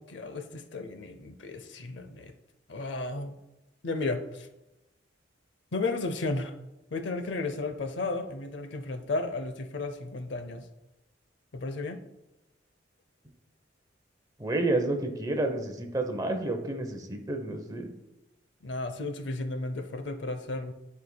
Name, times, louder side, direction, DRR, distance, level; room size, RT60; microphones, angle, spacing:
voice 1, 0.0-2.3 2.7-3.3 3.8-4.5 5.7-6.6 6.9-10.7 11.5-12.0 18.6-20.7, left 2 dB, 70° left, 8 dB, 0.6 m, -33 dB
voice 2, 14.4-17.9, right 2 dB, 20° right, 5 dB, 0.7 m, -30 dB
11.5 x 4.7 x 2.2 m, 0.96 s
head